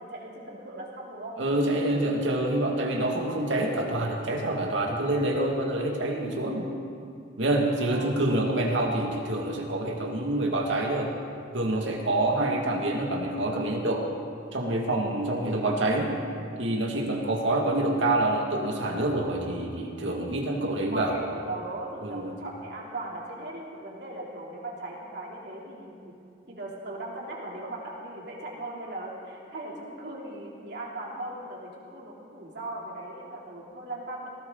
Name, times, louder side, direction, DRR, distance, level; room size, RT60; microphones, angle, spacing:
voice 1, 0.0-1.4 7.9-8.2 17.1-17.5 20.7-26.2 26.5-34.3, right 1 dB, 60° right, -3 dB, 3.5 m, -38 dB
voice 2, 1.4-6.7 7.4-11.1 11.5-14.1 14.5-16.1 16.6-21.1 22.0-22.4, right 1 dB, 85° right, 0 dB, 2.4 m, -27 dB
19.0 x 18.0 x 4.1 m, 2.5 s
head